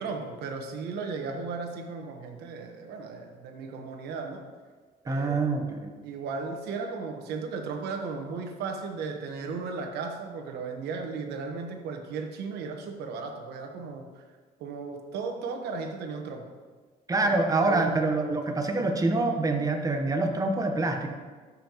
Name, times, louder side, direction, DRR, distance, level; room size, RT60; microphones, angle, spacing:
voice 1, 0.0-4.4 5.0-5.4 6.0-14.1 14.6-16.6 17.2-17.3 17.6-18.4, right 4 dB, 75° right, 3 dB, 1.2 m, -35 dB
voice 2, 5.1-5.9 17.1-21.1, right 2 dB, 20° right, 4 dB, 1.0 m, -26 dB
13.0 x 5.5 x 3.0 m, 1.4 s
cardioid pair, 110°, 17 cm